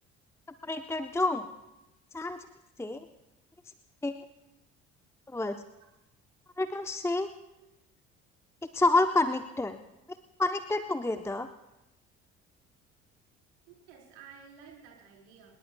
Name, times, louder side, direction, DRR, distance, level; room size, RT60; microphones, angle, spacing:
voice 1, 0.6-1.5 2.1-2.5 2.8-3.1 4.0-4.2 5.3-5.6 6.6-7.3 8.7-9.8 10.4-11.5, left 2 dB, 5° left, 9 dB, 0.8 m, -28 dB
voice 2, 13.7-15.5, right 7 dB, 70° right, -1 dB, 4.3 m, -53 dB
27.0 x 20.5 x 2.3 m, 0.92 s
figure-of-eight pair, 55°, 35 cm